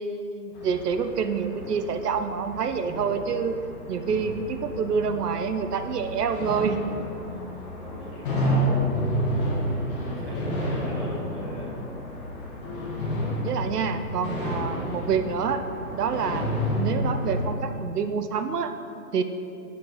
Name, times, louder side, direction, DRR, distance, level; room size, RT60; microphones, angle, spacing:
voice 1, 0.0-3.6 3.9-6.8 13.4-16.5 16.8-18.7 19.1-19.2, right 6 dB, 75° right, 8 dB, 0.8 m, -27 dB
sound 1, 0.5-17.5, equal, 35° left, 1.9 m, -30 dB
voice 2, 7.7-9.6 10.0-11.7, equal, 5° right, -11 dB, 1.0 m, -35 dB
9.5 x 7.4 x 4.1 m, 2.6 s
hypercardioid pair, 165°, 48 cm